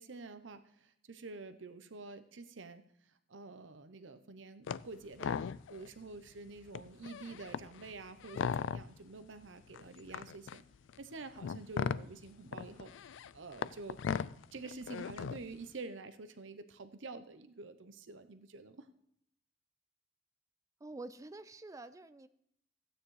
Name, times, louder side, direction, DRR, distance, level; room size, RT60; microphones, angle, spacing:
voice 1, 0.0-5.4 5.7-10.6 11.0-14.0 14.5-18.9, right 3 dB, 85° right, 11 dB, 0.8 m, -48 dB
sound 1, 4.7-4.9 5.1-5.9 6.3-6.4 6.7-9.1 9.7-15.5, left 6 dB, 85° left, 0.3 m, -38 dB
voice 2, 20.8-22.3, right 2 dB, 20° right, 12 dB, 0.4 m, -47 dB
15.0 x 9.2 x 3.2 m, 0.73 s
head